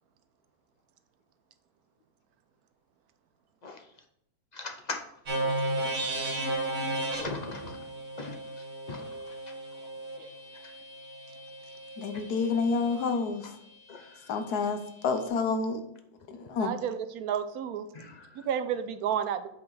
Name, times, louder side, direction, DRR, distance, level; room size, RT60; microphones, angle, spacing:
voice 1, 4.5-5.0 5.4-5.5 6.2-6.5 7.2-7.9 8.2-9.5 10.6-10.7 13.9-14.3 17.9-18.5, left 3 dB, 40° left, 4 dB, 0.6 m, -41 dB
sound 1, 5.3-13.1, right 2 dB, 60° right, 2.0 m, -35 dB
voice 2, 12.0-13.5 14.3-14.8 15.0-15.8 16.3-16.7, left 4 dB, 90° left, 8 dB, 1.4 m, -28 dB
voice 3, 16.6-17.9 18.5-19.5, right 8 dB, 80° right, 10 dB, 1.1 m, -31 dB
8.2 x 4.9 x 4.0 m, 0.77 s
omnidirectional pair, 1.6 m